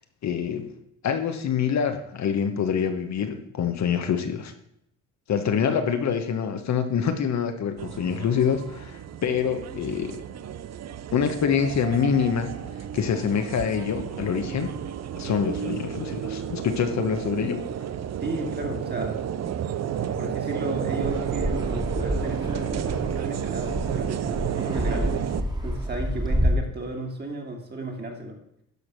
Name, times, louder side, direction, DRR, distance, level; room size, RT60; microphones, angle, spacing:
voice 1, 0.2-0.7 1.0-4.5 5.3-10.2 11.1-12.5 12.9-14.7 15.1-17.7, left 7 dB, 55° left, 7 dB, 1.3 m, -25 dB
sound 1, 7.8-25.4, right 9 dB, 50° right, 0.7 m, -32 dB
voice 2, 18.2-19.3 20.2-25.1 25.6-28.4, right 2 dB, 30° right, 2 dB, 2.5 m, -33 dB
Fixed-wing aircraft airplane, 21.0-26.5, equal, 10° right, 2.0 m, -29 dB
12.0 x 4.9 x 6.2 m, 0.76 s
cardioid pair, 85°, 33 cm